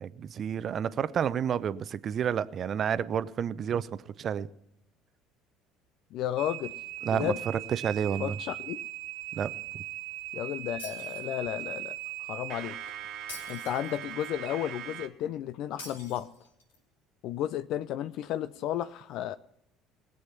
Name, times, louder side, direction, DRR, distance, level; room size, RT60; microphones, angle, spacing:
voice 1, 0.0-3.9 4.2-4.5 7.0-7.3 7.7-8.3 9.3-9.8, right 8 dB, 45° right, 0.6 m, -30 dB
voice 2, 6.1-6.8 7.1-7.4 8.2-8.8 10.3-12.8 13.5-16.3 17.2-19.4, left 11 dB, 60° left, 0.4 m, -33 dB
sound 1, 6.4-15.1, right 13 dB, 60° right, 1.4 m, -39 dB
Shatter, 10.8-11.8 13.3-14.3 15.8-16.8, left 2 dB, 85° left, 4.3 m, -46 dB
20.0 x 7.9 x 5.8 m
hypercardioid pair, 60°, 0 cm